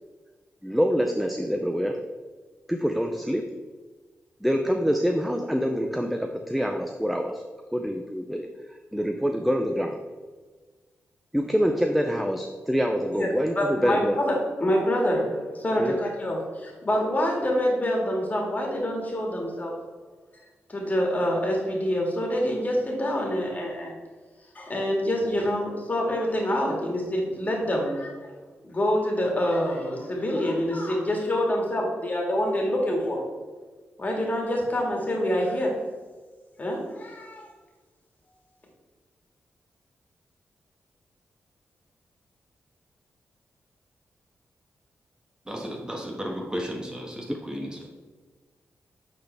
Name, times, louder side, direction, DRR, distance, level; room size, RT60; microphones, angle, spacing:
voice 1, 0.6-2.0 2.7-3.6 4.4-7.4 7.7-10.0 11.3-14.2 15.8-15.9, equal, ahead, 4 dB, 0.5 m, -26 dB
voice 2, 13.1-19.8 20.7-23.9 24.6-28.1 28.6-33.2 34.0-35.7 36.6-37.5, equal, 35° left, -1 dB, 2.0 m, -26 dB
voice 3, 45.4-47.9, equal, 15° right, 1 dB, 1.3 m, -34 dB
8.5 x 4.0 x 3.4 m, 1.4 s
cardioid pair, 65°, 5 cm